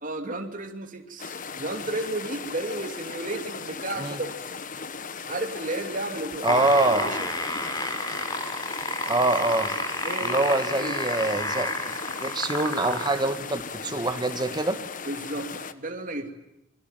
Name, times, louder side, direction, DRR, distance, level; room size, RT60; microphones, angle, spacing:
voice 1, 0.0-4.3 5.3-6.6 6.9-7.3 10.0-11.3 15.1-16.3, right 2 dB, 40° right, 4 dB, 2.8 m, -33 dB
sound 1, 1.2-15.7, left 5 dB, 40° left, 1.3 m, -37 dB
sound 2, 6.3-13.3 14.1-14.2, left 1 dB, 20° left, 4.3 m, -30 dB
voice 2, 6.4-7.1 9.1-9.7 10.2-11.9 12.2-14.8, right 2 dB, 20° right, 9 dB, 1.9 m, -25 dB
27.0 x 22.5 x 9.2 m, 0.87 s
head